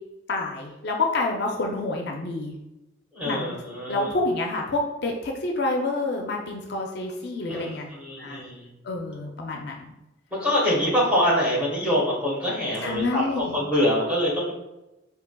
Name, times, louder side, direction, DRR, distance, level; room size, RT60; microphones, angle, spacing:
voice 1, 0.3-2.6 3.3-3.6 3.9-7.9 8.2-8.4 8.8-9.9 12.8-13.6, left 2 dB, 55° left, 1 dB, 0.4 m, -28 dB
voice 2, 3.1-4.1 7.5-8.7 10.4-14.5, equal, 5° right, -6 dB, 1.2 m, -25 dB
4.7 x 2.8 x 2.2 m, 0.97 s
head